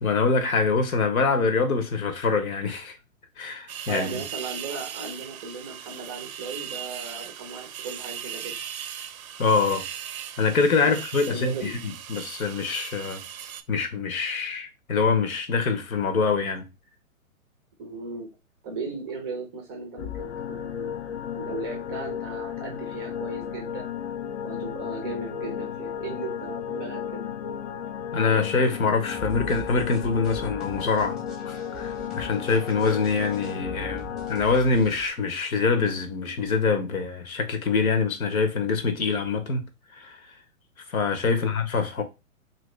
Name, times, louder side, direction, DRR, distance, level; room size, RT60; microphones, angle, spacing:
voice 1, 0.0-3.0 3.4-4.2 9.4-9.9 10.4-13.2 13.7-16.7 28.1-31.2 31.4-39.7 39.9-40.3 40.9-42.0, left 4 dB, 80° left, 0.9 m, -25 dB
sound 1, 3.7-13.6, right 9 dB, 80° right, 0.6 m, -38 dB
voice 2, 3.9-8.5 10.8-11.0 11.3-11.7 17.8-18.3 18.6-21.0 21.3-23.9 24.4-27.2 41.2-41.5, right 4 dB, 20° right, 0.5 m, -36 dB
sound 2, 20.0-34.4, left 8 dB, 50° left, 0.5 m, -34 dB
sound 3, 29.1-35.1, right 2 dB, ahead, 0.8 m, -43 dB
2.9 x 2.7 x 3.2 m
hypercardioid pair, 125°, 42 cm